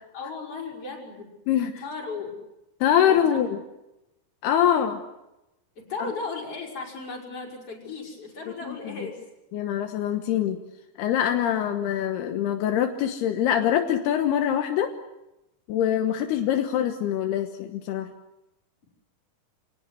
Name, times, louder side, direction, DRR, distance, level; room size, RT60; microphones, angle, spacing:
voice 1, 0.1-1.3 1.8-2.3 3.1-3.4 5.8-9.2, left 4 dB, 35° left, -1 dB, 6.6 m, -36 dB
voice 2, 1.5-1.8 2.8-3.6 4.4-5.0 8.7-9.0 9.5-10.6 11.0-14.9 15.7-18.1, left 10 dB, 80° left, 6 dB, 3.2 m, -24 dB
27.5 x 18.5 x 9.6 m, 0.94 s
omnidirectional pair, 4.6 m